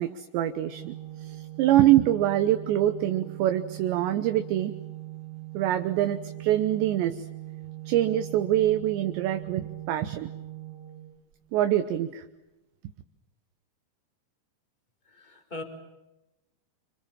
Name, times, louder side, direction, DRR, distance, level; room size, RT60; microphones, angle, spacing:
voice 1, 0.0-4.8 5.5-7.3 7.9-10.3 11.5-12.3, right 13 dB, 75° right, 8 dB, 2.9 m, -25 dB
Organ, 0.7-11.6, right 16 dB, 40° right, 3.8 m, -41 dB
voice 2, 15.1-15.6, left 2 dB, 10° left, 4 dB, 3.6 m, -40 dB
29.5 x 26.5 x 7.5 m, 0.98 s
omnidirectional pair, 5.9 m